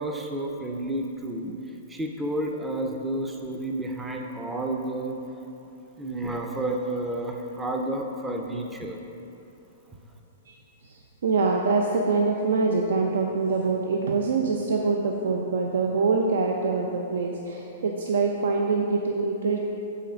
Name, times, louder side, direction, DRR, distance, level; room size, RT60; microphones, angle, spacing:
voice 1, 0.0-1.5 1.9-5.2 6.0-9.0, right 1 dB, 5° right, 2 dB, 0.4 m, -30 dB
voice 2, 10.8-19.6, right 4 dB, 80° right, 1 dB, 0.6 m, -25 dB
8.3 x 4.2 x 6.3 m, 3.0 s
hypercardioid pair, 170°, 0 cm